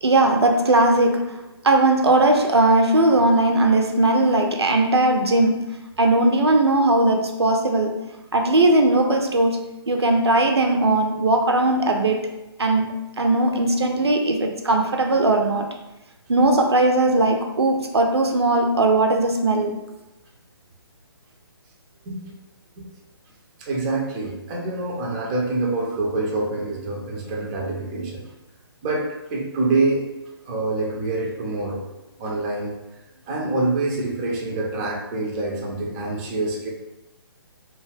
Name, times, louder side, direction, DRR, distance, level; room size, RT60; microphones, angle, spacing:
voice 1, 0.0-5.6 6.0-8.0 8.3-12.2 12.6-15.7 16.3-19.7, right 2 dB, 85° right, 3 dB, 0.5 m, -19 dB
voice 2, 23.6-28.2 28.8-30.0 30.4-31.8 32.2-32.7 33.3-36.7, right 2 dB, 20° right, -2 dB, 0.4 m, -26 dB
2.6 x 2.3 x 3.1 m, 0.98 s
figure-of-eight pair, 140°, 13 cm